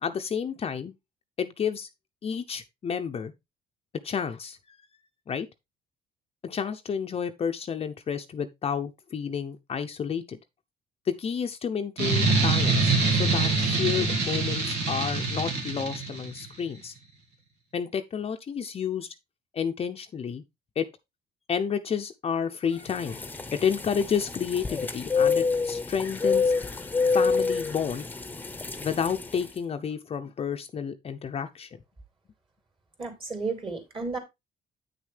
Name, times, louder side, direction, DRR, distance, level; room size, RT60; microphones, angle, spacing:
voice 1, 0.0-0.9 1.4-1.9 2.2-3.3 4.0-4.8 5.3-5.5 6.4-10.4 11.1-16.9 17.7-19.1 19.5-20.4 20.8-20.9 21.5-26.5 27.0-28.1 28.8-31.7, left 7 dB, 35° left, 0.7 m, -30 dB
sound 1, 12.0-16.4, right 3 dB, 80° right, 2.6 m, -25 dB
sound 2, 22.9-29.5, left 4 dB, 10° left, 0.9 m, -28 dB
voice 2, 33.0-34.2, right 4 dB, 30° right, 3.2 m, -32 dB
8.7 x 6.4 x 3.3 m
cardioid pair, 110°, 17 cm